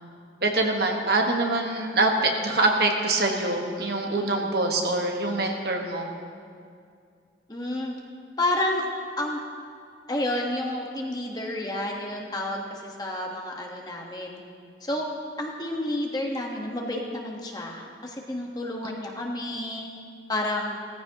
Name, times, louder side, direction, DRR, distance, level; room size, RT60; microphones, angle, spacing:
voice 1, 0.4-6.1, right 2 dB, 60° right, 2 dB, 1.3 m, -24 dB
voice 2, 4.1-4.5 7.5-7.9 8.4-8.9 9.2-9.4 10.1-14.4 14.8-15.1 15.4-19.9 20.3-20.8, left 1 dB, 20° left, 0 dB, 1.2 m, -30 dB
17.5 x 14.5 x 2.9 m, 2.3 s
head